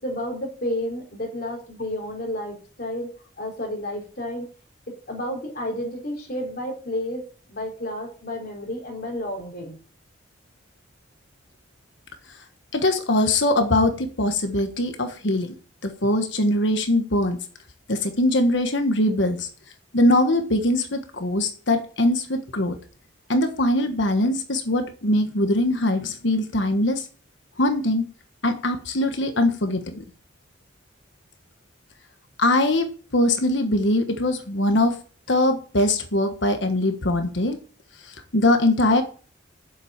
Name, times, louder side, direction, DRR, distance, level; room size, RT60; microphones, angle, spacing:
voice 1, 0.0-4.5 4.9-9.8, left 1 dB, 50° left, 3.9 m, -31 dB
voice 2, 12.7-15.6 15.8-17.4 17.9-19.5 19.9-22.8 23.3-27.0 27.6-28.1 28.4-30.0 32.4-32.9 33.1-35.0 35.3-37.6 38.0-39.0, left 1 dB, 65° left, 1.3 m, -22 dB
7.7 x 7.6 x 8.7 m
head